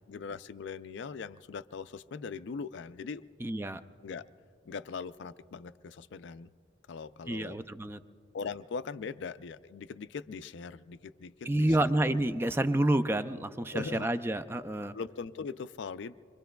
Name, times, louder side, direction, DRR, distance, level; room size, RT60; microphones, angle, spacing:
voice 1, 0.1-3.2 4.0-4.3 4.7-6.5 6.9-7.6 8.3-12.3 13.7-14.1 14.9-16.2, left 5 dB, 60° left, 13 dB, 0.4 m, -40 dB
voice 2, 3.4-3.8 7.3-8.0 11.5-14.9, right 1 dB, 10° right, 11 dB, 0.3 m, -29 dB
26.0 x 24.0 x 2.3 m, 2.4 s
head